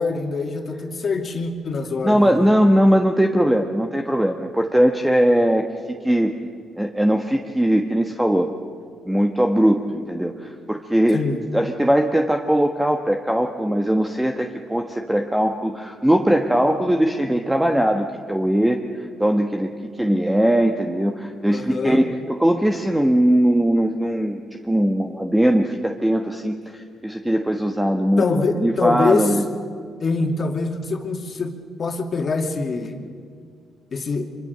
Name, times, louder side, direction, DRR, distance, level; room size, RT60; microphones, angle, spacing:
voice 1, 0.0-2.5 11.1-11.4 21.5-22.0 28.2-29.3 30.0-31.5 31.8-33.0 33.9-34.3, left 4 dB, 45° left, 4 dB, 2.6 m, -24 dB
voice 2, 2.0-5.6 6.0-6.3 6.8-8.5 9.1-11.2 11.5-18.8 19.2-19.7 20.0-24.4 24.7-29.5, equal, 5° right, 4 dB, 1.3 m, -20 dB
25.0 x 23.5 x 6.8 m, 2.2 s
cardioid pair, 90°, 0 cm